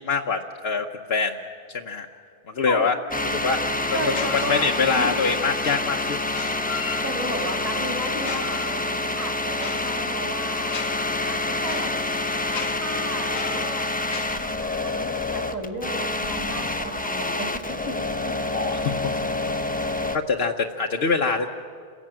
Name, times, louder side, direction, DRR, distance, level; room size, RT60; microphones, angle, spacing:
voice 1, 0.0-1.4 1.7-2.1 2.5-3.0 3.2-3.6 3.9-4.0 4.5-6.2 18.5-19.1 20.3-21.5, left 4 dB, 75° left, 1 dB, 1.2 m, -24 dB
sound 1, 3.1-20.2, left 2 dB, 10° left, 0.8 m, -27 dB
voice 2, 3.9-5.2 7.0-10.7 11.3-11.9 12.5-13.9 14.3-18.0 18.3-18.4, equal, 15° right, 3 dB, 2.8 m, -34 dB
sound 2, 4.1-5.1 6.3-7.5 8.1-14.4, left 6 dB, 50° left, 0.8 m, -37 dB
28.5 x 16.5 x 8.9 m, 2.2 s
omnidirectional pair, 1.0 m